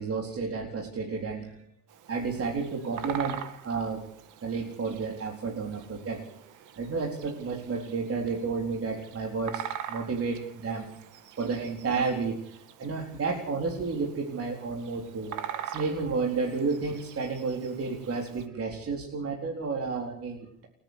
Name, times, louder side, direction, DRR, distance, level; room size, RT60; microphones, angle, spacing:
voice 1, 0.0-1.6 2.1-4.1 4.4-6.2 6.8-10.9 11.4-12.4 12.8-15.4 15.7-20.7, right 4 dB, 50° right, 1 dB, 4.2 m, -31 dB
Bird vocalization bird call bird song, 1.9-18.5, right 10 dB, 85° right, 2.2 m, -43 dB
29.5 x 10.0 x 9.7 m, 0.66 s
cardioid pair, 90°, 30 cm